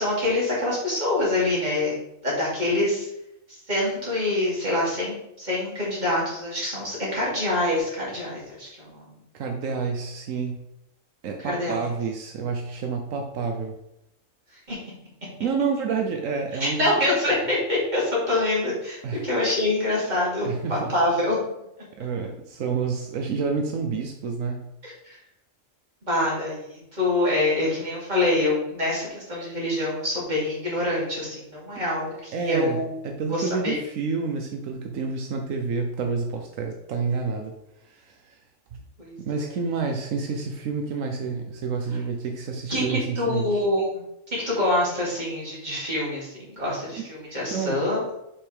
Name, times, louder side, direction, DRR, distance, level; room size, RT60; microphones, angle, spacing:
voice 1, 0.0-2.0 2.2-3.1 3.7-9.0 11.4-11.7 14.7-14.8 16.6-21.4 24.8-25.2 26.0-32.9 33.3-33.8 39.0-39.5 42.7-44.0 44.3-48.0, left 1 dB, 35° right, -6 dB, 3.1 m, -25 dB
voice 2, 9.3-10.6 11.2-13.7 15.4-16.8 17.2-17.3 19.0-19.2 20.4-20.9 22.0-24.7 32.3-37.5 37.8-38.4 38.7-38.8 39.2-43.7 47.0-47.1 47.5-47.8, right 5 dB, 85° right, 3 dB, 1.1 m, -29 dB
7.2 x 5.4 x 3.4 m, 0.84 s
omnidirectional pair, 1.3 m